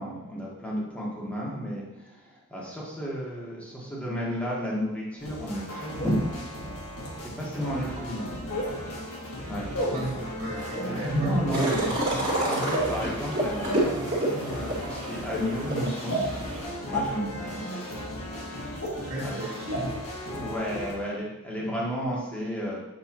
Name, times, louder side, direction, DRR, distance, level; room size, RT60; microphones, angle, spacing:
voice 1, 0.0-7.0 7.4-8.6 9.0-10.0 10.9-16.2 16.9-17.6 18.5-19.4 20.3-22.8, equal, 5° left, -5 dB, 1.5 m, -32 dB
Dark Jazz Pattern, 5.2-20.9, equal, 90° left, 1.8 m, -37 dB
sound 1, 6.0-6.1 7.0-7.1 8.5-8.7 9.7-9.9 10.7-10.9 11.9-12.1 12.7-12.9 13.7-13.8 14.4-14.6 15.3-15.4 16.1-16.2 16.9-17.0 17.9-18.0 18.8-18.9 19.7-19.8 20.3-20.4, left 1 dB, 50° left, 1.6 m, -30 dB
voice 2, 9.7-11.6 19.0-20.0, right 1 dB, 60° right, -9 dB, 1.7 m, -35 dB
sound 2, 11.5-16.6, right 1 dB, 40° right, 2.1 m, -29 dB
7.3 x 5.3 x 3.0 m, 1.0 s
head